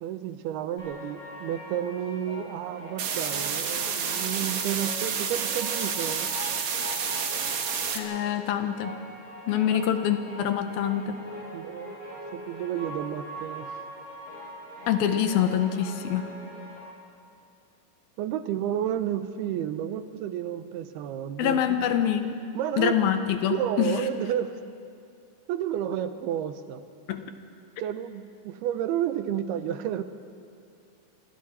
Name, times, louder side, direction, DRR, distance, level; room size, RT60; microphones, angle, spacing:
voice 1, 0.0-6.3 9.7-9.9 11.5-12.0 12.3-13.7 18.2-21.6 22.5-23.0 23.5-24.6 25.5-26.8 27.8-30.0, right 10 dB, 85° right, 10 dB, 2.8 m, -31 dB
sound 1, 0.8-16.8, equal, 40° left, 8.9 m, -42 dB
sound 2, 3.0-8.0, right 7 dB, 55° right, 2.2 m, -29 dB
voice 2, 7.9-8.9 9.5-11.2 14.9-16.3 21.4-22.4 22.8-24.0 27.1-27.3, left 9 dB, 75° left, 8 dB, 2.7 m, -25 dB
28.5 x 24.0 x 4.3 m, 2.4 s
omnidirectional pair, 4.4 m